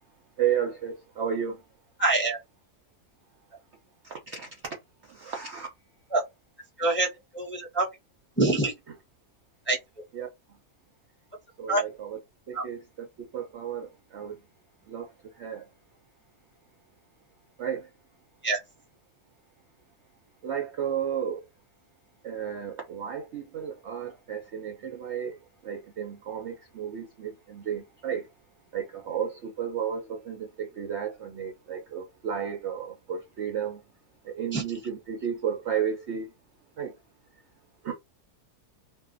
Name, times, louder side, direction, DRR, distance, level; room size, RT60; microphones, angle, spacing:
voice 1, 0.4-1.6 4.0-4.5 5.1-5.7 10.1-10.3 11.6-12.2 12.5-14.4 14.9-15.1 15.4-15.6 17.6-17.9 20.4-21.4 22.2-25.3 25.6-28.3 28.7-33.8 34.2-36.3 36.8-36.9 37.8-37.9, right 8 dB, 65° right, 0.7 m, -33 dB
voice 2, 2.0-2.4 6.1-6.2 6.8-7.1 7.3-7.8 8.4-8.7 9.7-9.8 11.7-11.8 12.5-12.6 18.4-18.6 34.5-34.6, right 2 dB, 10° left, 0.6 m, -24 dB
2.5 x 2.2 x 2.5 m
omnidirectional pair, 1.7 m